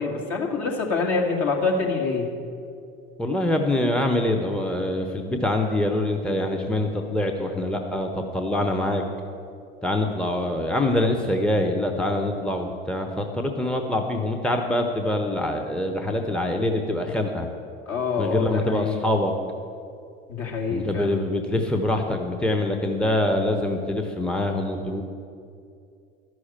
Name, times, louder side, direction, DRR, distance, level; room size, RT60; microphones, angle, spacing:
voice 1, 0.0-2.3 17.9-19.0 20.3-21.2, left 4 dB, 50° left, 0 dB, 2.3 m, -26 dB
voice 2, 3.2-9.0 9.8-17.5 18.2-19.3 20.7-25.0, left 1 dB, 5° left, 3 dB, 0.9 m, -24 dB
11.5 x 6.3 x 8.8 m, 2.5 s
hypercardioid pair, 80°, 30 cm